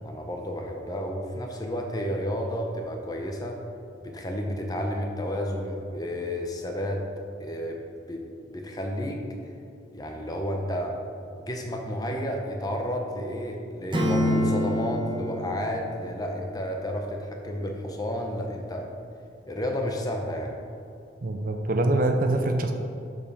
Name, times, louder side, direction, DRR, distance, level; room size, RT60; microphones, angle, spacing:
voice 1, 0.0-3.6 4.0-7.0 7.4-9.2 9.9-11.0 11.4-18.9 19.5-20.6, equal, 20° left, 2 dB, 0.7 m, -31 dB
Acoustic guitar / Strum, 13.9-17.0, equal, 25° right, 0.9 m, -28 dB
voice 2, 21.2-22.7, right 2 dB, 45° right, 5 dB, 0.5 m, -24 dB
7.1 x 5.3 x 5.3 m, 2.5 s
head